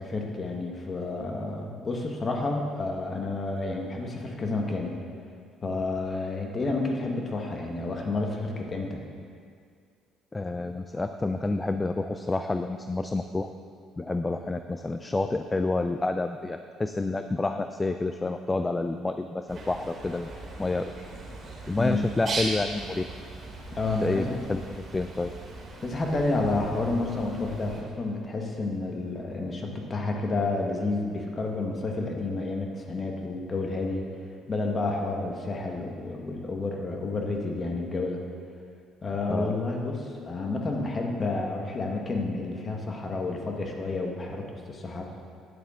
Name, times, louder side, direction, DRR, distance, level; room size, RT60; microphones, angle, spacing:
voice 1, 0.0-4.9 5.6-9.0 21.8-22.0 23.7-24.4 25.8-34.0 34.5-38.2 39.0-45.0, left 2 dB, 35° left, 1 dB, 1.5 m, -30 dB
voice 2, 10.3-13.5 14.0-20.3 20.6-20.9 21.7-23.1 24.0-24.6 24.9-25.3 39.3-39.6, left 2 dB, 20° left, 8 dB, 0.4 m, -29 dB
Bird, 19.5-27.8, right 2 dB, 45° right, 2.5 m, -39 dB
10.5 x 8.3 x 3.8 m, 2.2 s
supercardioid pair, 75°, 0 cm